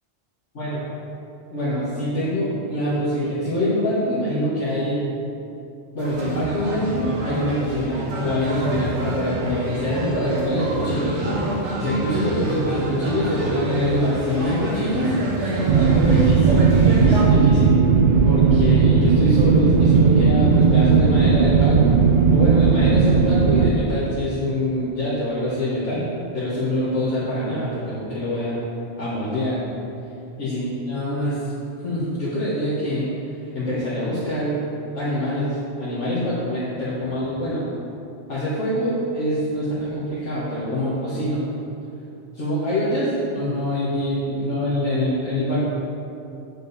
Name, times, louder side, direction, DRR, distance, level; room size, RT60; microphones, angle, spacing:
voice 1, 1.5-5.0 5.9-11.2 11.8-17.7 18.2-22.0 22.3-26.0 26.3-28.6 29.0-29.6 30.4-31.5 31.8-33.1 33.5-34.6 34.9-37.7 38.3-41.4 42.3-45.6, equal, 85° left, -11 dB, 2.0 m, -25 dB
sound 1, 6.0-17.3, right 1 dB, 85° right, 1.6 m, -27 dB
sound 2, 15.7-23.7, right 5 dB, 60° right, 0.5 m, -16 dB
8.9 x 6.4 x 4.2 m, 2.8 s
omnidirectional pair, 1.2 m